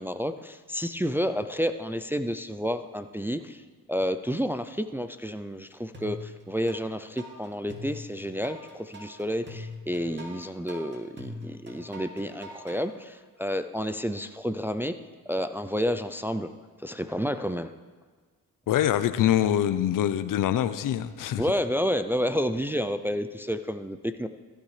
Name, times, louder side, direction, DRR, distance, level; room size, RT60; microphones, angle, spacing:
voice 1, 0.0-3.6 3.9-14.9 15.3-16.5 16.8-17.7 21.4-24.3, equal, 5° right, 9 dB, 0.4 m, -30 dB
sound 1, 5.9-6.8 7.2-12.8, left 1 dB, 30° right, 2.3 m, -41 dB
voice 2, 18.7-21.4, left 11 dB, 65° left, 13 dB, 0.7 m, -24 dB
15.0 x 10.5 x 3.3 m, 1.5 s
cardioid pair, 75°, 36 cm